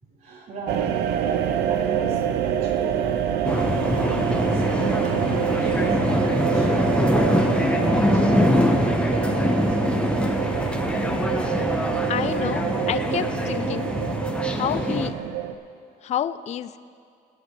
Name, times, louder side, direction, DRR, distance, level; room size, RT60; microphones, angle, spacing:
voice 1, 0.0-7.6 7.9-10.1 14.4-14.6 15.9-16.0, right 2 dB, 55° right, -6 dB, 3.7 m, -40 dB
sound 1, 0.7-15.5, right 10 dB, 80° right, 0.7 m, -26 dB
sound 2, 3.4-15.1, left 1 dB, 5° left, 1.0 m, -23 dB
voice 2, 12.1-13.9 14.5-15.1 16.0-16.8, left 10 dB, 40° left, 13 dB, 0.4 m, -28 dB
21.0 x 9.3 x 3.3 m, 2.3 s
cardioid pair, 110°, 17 cm